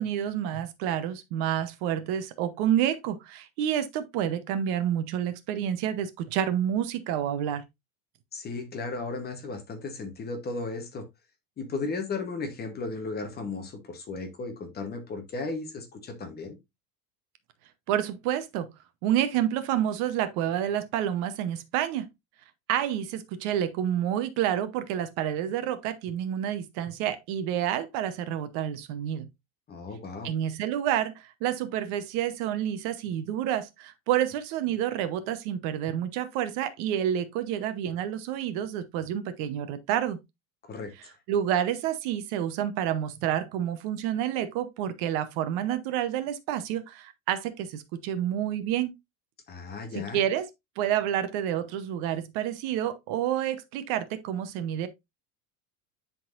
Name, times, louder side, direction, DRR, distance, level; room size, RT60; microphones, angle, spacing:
voice 1, 0.0-7.6 17.9-18.7 19.0-22.1 22.7-29.3 30.2-40.2 41.3-48.9 49.9-50.5 50.8-54.9, right 10 dB, 55° right, 0.9 m, -29 dB
voice 2, 8.3-11.0 11.6-16.6 29.7-30.3 40.6-41.1 49.5-50.2, left 3 dB, 20° left, 1.0 m, -35 dB
10.0 x 4.0 x 2.5 m
cardioid pair, 165°, 46 cm